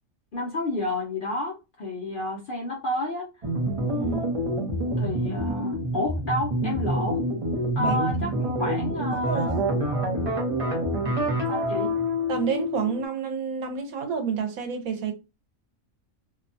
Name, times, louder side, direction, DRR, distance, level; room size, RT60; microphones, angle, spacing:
voice 1, 0.3-3.3 5.0-7.3 7.8-9.6 11.5-12.0, left 1 dB, 55° left, 0.6 m, -30 dB
sound 1, 3.4-13.0, equal, 35° right, 0.6 m, -27 dB
voice 2, 3.8-4.2 7.8-8.3 9.1-9.7 12.3-15.1, right 6 dB, 85° right, 1.2 m, -29 dB
2.7 x 2.2 x 2.6 m
omnidirectional pair, 1.4 m